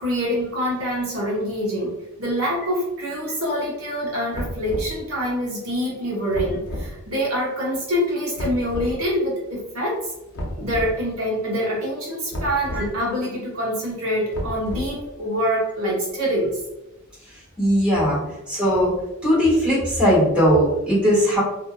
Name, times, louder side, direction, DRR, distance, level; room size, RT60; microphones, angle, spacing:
voice 1, 0.0-1.9 2.2-10.1 10.6-16.6, equal, 65° right, -5 dB, 0.9 m, -25 dB
sound 1, 4.3-5.0 6.3-6.9 8.4-8.9 10.4-10.9 12.3-12.9 14.3-15.1, equal, 55° left, 0.6 m, -31 dB
voice 2, 17.6-18.2 18.5-18.9 19.2-21.4, equal, 5° right, -10 dB, 1.3 m, -18 dB
2.7 x 2.6 x 2.2 m, 0.94 s
head